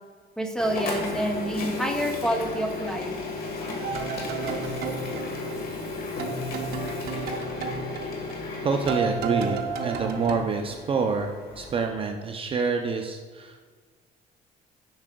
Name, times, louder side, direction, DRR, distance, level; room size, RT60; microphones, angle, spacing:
voice 1, 0.4-3.1, equal, 5° left, 3 dB, 0.7 m, -28 dB
Printer, 0.6-11.9, left 3 dB, 60° left, 1.4 m, -34 dB
sound 1, 3.8-5.9 6.2-10.4, right 5 dB, 70° right, 0.7 m, -32 dB
voice 2, 8.6-13.7, right 5 dB, 35° right, 4 dB, 0.5 m, -27 dB
7.2 x 6.1 x 2.2 m, 1.5 s
cardioid pair, 110°, 17 cm